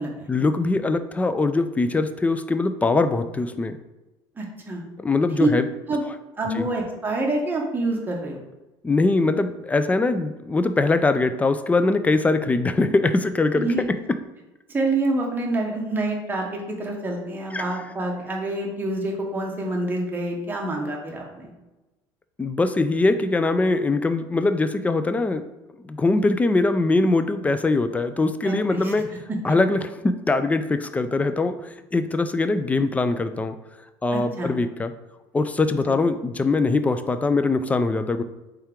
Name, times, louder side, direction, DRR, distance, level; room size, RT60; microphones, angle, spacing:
voice 1, 0.3-3.8 5.0-5.7 6.6-6.7 8.8-13.7 17.5-17.7 22.4-25.5 25.8-29.1 29.4-33.6 34.0-34.9 35.3-38.2, left 3 dB, 15° left, 10 dB, 0.3 m, -22 dB
voice 2, 4.4-4.8 5.4-5.5 5.9-6.0 6.4-8.4 13.5-13.8 14.7-21.5 28.4-28.9 29.3-29.4 34.1-34.5 35.9-36.0, right 2 dB, 20° right, 0 dB, 1.1 m, -27 dB
4.4 x 3.4 x 3.6 m, 1.1 s
cardioid pair, 115°, 11 cm